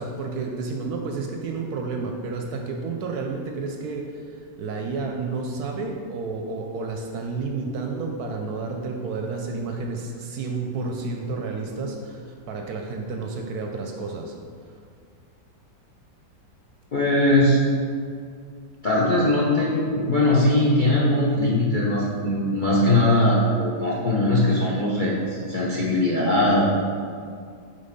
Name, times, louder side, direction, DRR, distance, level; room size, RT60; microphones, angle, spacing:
voice 1, 0.0-14.3, right 4 dB, 70° right, 3 dB, 1.0 m, -31 dB
voice 2, 16.9-17.6 18.8-26.7, left 1 dB, 50° left, -6 dB, 0.6 m, -20 dB
5.5 x 3.6 x 5.2 m, 2.2 s
omnidirectional pair, 1.9 m